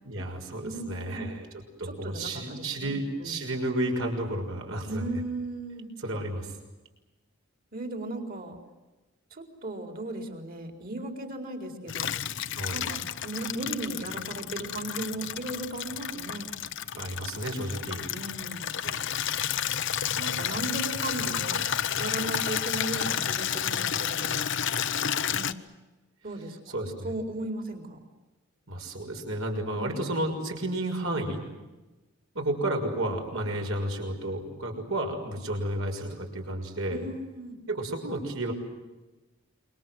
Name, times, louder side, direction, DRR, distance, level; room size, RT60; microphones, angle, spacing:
voice 1, 0.0-1.5 1.8-5.1 6.0-6.5 12.5-12.8 16.9-18.0 18.8-19.0 26.7-27.1 28.7-31.4 32.3-37.0 37.7-38.5, right 1 dB, 65° right, 3 dB, 6.3 m, -32 dB
voice 2, 0.6-1.3 1.8-3.4 4.8-5.9 7.7-8.6 9.3-12.1 12.7-16.5 18.1-18.7 20.2-21.6 22.0-24.5 25.3-25.5 26.2-26.8 27.0-28.0 29.7-30.1 36.9-37.6, right 2 dB, 45° right, 5 dB, 4.5 m, -36 dB
Water tap faucet / Liquid, 11.9-25.5, left 9 dB, 60° left, 1.0 m, -31 dB
28.0 x 24.5 x 7.9 m, 1.1 s
head